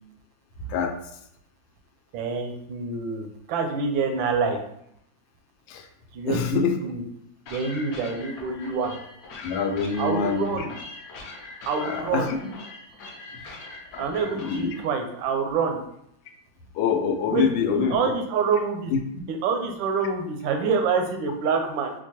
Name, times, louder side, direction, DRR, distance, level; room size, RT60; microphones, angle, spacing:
voice 1, 2.1-4.6 6.1-6.4 6.8-7.0 7.5-9.0 10.0-10.7 11.7-12.3 14.0-15.8 17.3-17.5 17.8-18.9 19.3-21.9, right 5 dB, 90° right, 4 dB, 1.3 m, -26 dB
voice 2, 6.3-6.9 9.4-10.7 11.8-12.4 13.9-14.7 16.7-18.0 18.9-19.0, left 6 dB, 80° left, 4 dB, 1.3 m, -25 dB
sound 1, 7.5-14.9, left 3 dB, 65° left, 0.9 m, -42 dB
4.5 x 2.2 x 2.8 m, 0.74 s
omnidirectional pair, 2.0 m